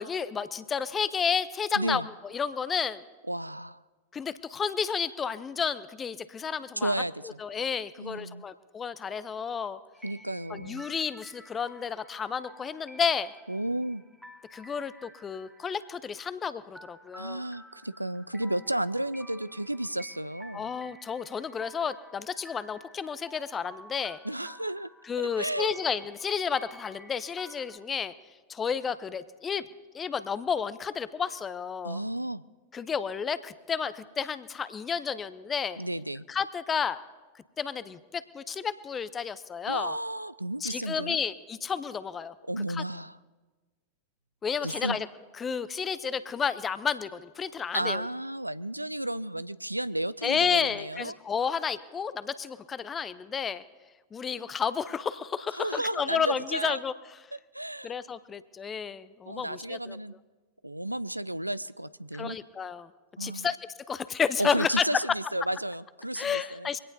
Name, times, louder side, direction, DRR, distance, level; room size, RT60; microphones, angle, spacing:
voice 1, 0.0-3.0 4.1-6.9 7.4-9.8 10.5-13.3 14.5-17.4 20.5-24.2 25.1-28.1 28.5-29.7 29.9-32.0 32.7-35.8 36.3-37.0 37.6-40.0 40.6-42.3 42.7-42.8 44.4-45.1 45.4-48.0 50.2-53.6 54.1-56.9 57.8-60.0 62.1-62.9 63.2-63.6 63.9-65.0 66.2-66.8, left 6 dB, 20° left, 16 dB, 0.6 m, -31 dB
voice 2, 1.8-2.1 3.3-3.8 6.8-7.4 8.0-8.4 10.0-10.8 13.5-14.0 17.2-20.7 24.2-24.9 25.4-25.7 31.8-32.4 35.8-36.3 39.7-41.2 42.5-43.2 44.6-45.0 47.7-51.1 55.5-56.8 57.5-58.0 59.3-60.1 60.6-62.4 63.2-63.5 64.4-66.7, right 1 dB, 85° right, 17 dB, 0.3 m, -32 dB
sound 1, 9.9-27.8, equal, ahead, 1.5 m, -52 dB
24.0 x 17.0 x 2.7 m, 1.3 s
figure-of-eight pair, 90°, 0 cm